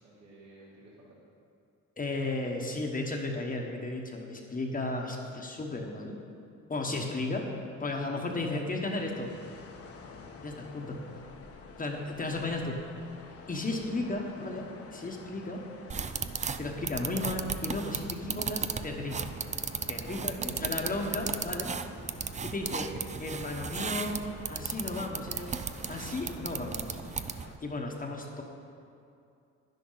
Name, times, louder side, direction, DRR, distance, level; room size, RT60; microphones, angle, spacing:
voice 1, 0.0-1.2 13.9-14.1 19.8-21.3, right 1 dB, 65° right, -7 dB, 2.9 m, -51 dB
voice 2, 2.0-6.2 6.7-7.5 7.8-9.3 10.4-11.0 11.8-12.8 13.5-15.6 15.9-16.1 16.6-19.3 19.9-21.7 22.4-22.9 23.2-24.2 24.5-25.6 25.9-28.4, left 2 dB, 30° left, 0 dB, 1.2 m, -34 dB
sound 1, 9.0-27.6, left 4 dB, 50° left, 1.1 m, -50 dB
sound 2, 15.9-27.6, right 6 dB, 25° right, 0.4 m, -36 dB
10.5 x 10.5 x 4.0 m, 2.5 s
cardioid pair, 90°, 30 cm